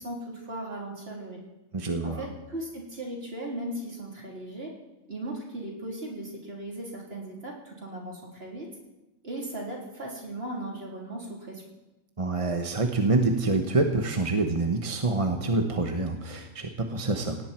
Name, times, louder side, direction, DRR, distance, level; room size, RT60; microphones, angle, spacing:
voice 1, 0.0-1.4 2.0-4.7 5.1-8.7 9.2-11.6, right 1 dB, 45° right, -2 dB, 4.1 m, -37 dB
voice 2, 1.7-2.2 12.2-17.4, right 3 dB, 25° right, 4 dB, 1.1 m, -26 dB
18.5 x 17.0 x 4.5 m, 1.0 s
omnidirectional pair, 1.4 m